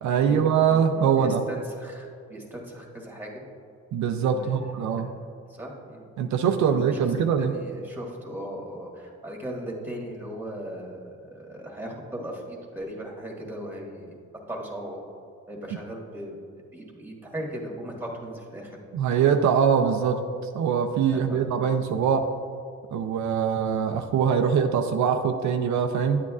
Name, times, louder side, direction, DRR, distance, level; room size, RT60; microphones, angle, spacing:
voice 1, 0.0-1.4 3.9-5.1 6.2-7.5 18.9-20.2 20.5-22.3 22.9-26.2, right 7 dB, 70° right, 6 dB, 0.5 m, -23 dB
voice 2, 0.7-3.4 4.2-5.0 5.5-6.0 6.6-7.0 7.4-14.2 14.5-15.0 15.5-16.4 16.7-18.8 21.1-21.7, right 1 dB, 5° right, -1 dB, 1.7 m, -38 dB
10.5 x 8.4 x 2.4 m, 2.5 s
cardioid pair, 90°, 30 cm